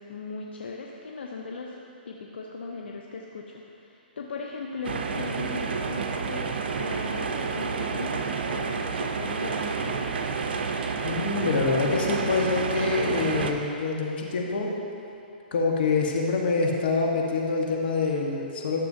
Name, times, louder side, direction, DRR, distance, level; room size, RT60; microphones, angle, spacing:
voice 1, 0.0-1.8 2.1-10.1, left 4 dB, 85° left, 0 dB, 0.7 m, -38 dB
sound 1, 4.8-13.5, right 5 dB, 70° right, 0.6 m, -29 dB
voice 2, 11.0-14.7 15.5-18.9, left 4 dB, 65° left, 0 dB, 1.3 m, -26 dB
12.5 x 6.8 x 2.8 m, 2.8 s
hypercardioid pair, 140°, 6 cm